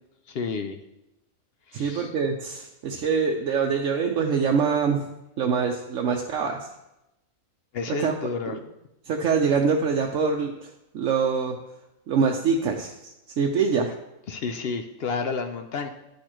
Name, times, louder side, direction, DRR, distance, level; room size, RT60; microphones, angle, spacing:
voice 1, 0.3-0.8 1.7-2.1 7.7-8.6 14.3-15.9, left 4 dB, 60° left, 7 dB, 0.7 m, -30 dB
voice 2, 1.7-5.0 5.4-6.6 8.0-8.1 8.5-8.6 9.1-11.6 12.1-13.9, right 5 dB, 70° right, 1 dB, 1.0 m, -24 dB
10.5 x 6.5 x 3.0 m, 0.89 s
omnidirectional pair, 1.4 m